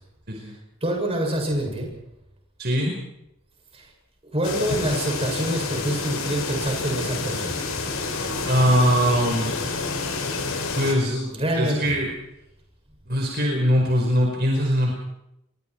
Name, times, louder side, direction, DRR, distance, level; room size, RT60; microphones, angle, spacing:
voice 1, 0.8-1.9 3.7-3.9 4.3-7.6 11.3-11.9, right 1 dB, 25° right, 1 dB, 7.3 m, -26 dB
voice 2, 2.6-3.0 8.5-9.6 10.7-12.1 13.1-14.9, equal, 50° right, 1 dB, 4.9 m, -22 dB
sound 1, 4.4-10.9, left 3 dB, 80° left, 6.7 m, -29 dB
29.5 x 22.5 x 4.7 m, 0.84 s
head